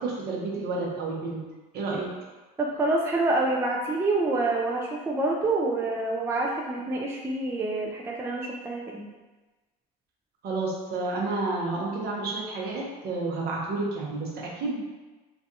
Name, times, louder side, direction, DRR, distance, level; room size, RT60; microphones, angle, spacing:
voice 1, 0.0-1.5 1.7-2.1 10.4-14.8, right 3 dB, 55° right, -3 dB, 0.8 m, -30 dB
voice 2, 2.6-9.1, right 2 dB, 15° right, -1 dB, 0.3 m, -27 dB
2.5 x 2.2 x 2.6 m, 1.2 s
hypercardioid pair, 80°, 20 cm